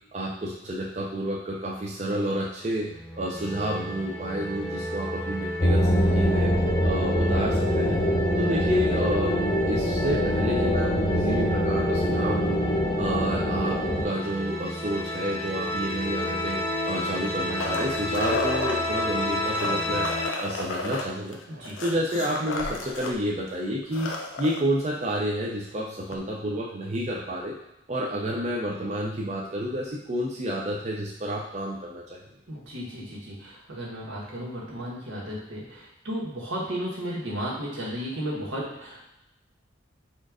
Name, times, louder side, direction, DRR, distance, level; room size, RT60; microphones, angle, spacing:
voice 1, 0.1-6.5 6.8-8.0 8.4-9.4 9.7-16.6 16.9-20.1 20.4-21.4 21.8-27.5 27.9-32.0, right 1 dB, 35° right, -4 dB, 0.5 m, -30 dB
sound 1, 2.9-20.3, left 1 dB, 15° left, 0.5 m, -32 dB
sound 2, 5.6-14.0, equal, 40° left, 0.8 m, -24 dB
sound 3, 16.9-18.8 19.4-23.1 23.5-23.6 23.8-24.6 26.1-26.2, left 2 dB, 90° left, 0.6 m, -32 dB
voice 2, 32.5-39.0, equal, 85° right, -5 dB, 1.5 m, -34 dB
4.3 x 2.5 x 4.8 m, 0.88 s
head